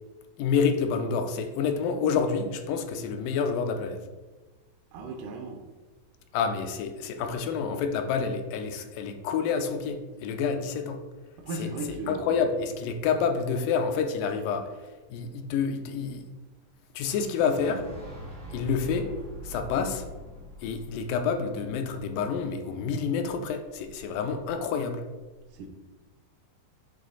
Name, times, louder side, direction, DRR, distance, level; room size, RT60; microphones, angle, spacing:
voice 1, 0.4-4.0 6.3-11.0 11.5-14.7 15.1-16.3 17.0-17.9 18.5-19.1 19.4-20.0 20.6-25.0, left 6 dB, 85° left, 6 dB, 2.2 m, -28 dB
voice 2, 4.9-5.6 11.4-12.3 25.5-25.7, right 2 dB, 75° right, 4 dB, 2.0 m, -36 dB
Boom, 17.0-22.9, equal, 5° left, 0.5 m, -44 dB
8.5 x 3.1 x 3.9 m, 1.2 s
omnidirectional pair, 3.8 m